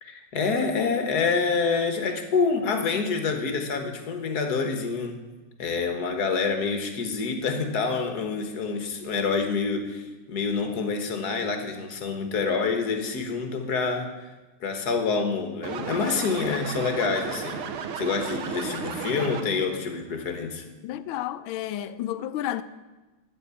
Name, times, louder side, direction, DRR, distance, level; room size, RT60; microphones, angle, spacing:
voice 1, 0.0-5.2 5.6-14.1 14.6-17.6 18.0-20.6, left 4 dB, 50° left, 1.7 m, -27 dB
sound 1, 15.6-19.8, right 6 dB, 85° right, 1.8 m, -34 dB
voice 2, 20.8-22.6, left 12 dB, 75° left, 1.4 m, -31 dB
14.0 x 4.9 x 8.4 m
omnidirectional pair, 2.3 m